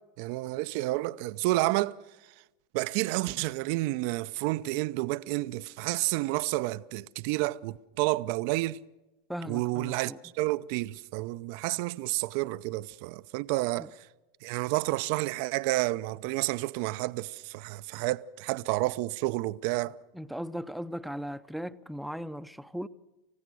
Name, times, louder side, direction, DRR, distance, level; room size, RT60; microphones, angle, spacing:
voice 1, 0.2-2.0 2.7-8.8 9.4-14.0 14.4-20.0, right 19 dB, 60° right, 0.6 m, -30 dB
voice 2, 9.3-10.2 13.8-13.9 20.1-22.9, equal, ahead, 0.8 m, -37 dB
29.0 x 15.5 x 6.3 m
hypercardioid pair, 100°, 0 cm